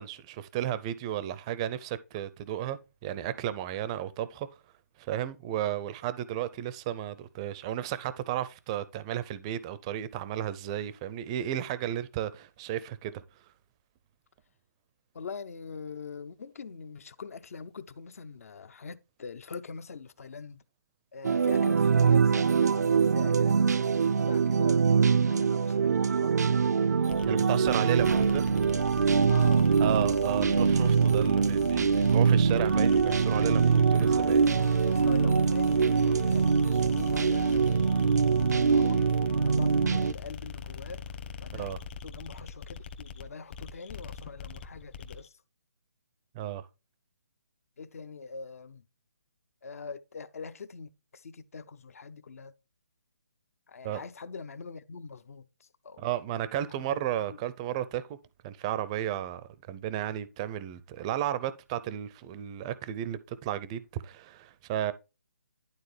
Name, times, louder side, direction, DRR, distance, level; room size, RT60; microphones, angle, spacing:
voice 1, 0.0-4.5 5.0-13.2 27.3-28.4 29.8-34.4 41.5-41.8 46.3-46.6 53.8-54.0 56.0-58.2 58.4-64.9, right 11 dB, 20° right, 0.4 m, -33 dB
voice 2, 15.1-20.6 21.1-24.9 25.2-26.4 27.0-28.2 29.3-29.7 34.8-37.8 38.4-41.0 41.4-45.3 47.8-48.8 49.6-52.5 53.7-56.0 56.7-57.0 57.3-57.4, left 4 dB, 60° left, 0.6 m, -43 dB
sound 1, 21.2-40.1, right 5 dB, 85° right, 0.4 m, -24 dB
sound 2, 27.1-45.3, left 6 dB, 35° left, 0.9 m, -41 dB
11.5 x 3.9 x 3.2 m
hypercardioid pair, 155°, 9 cm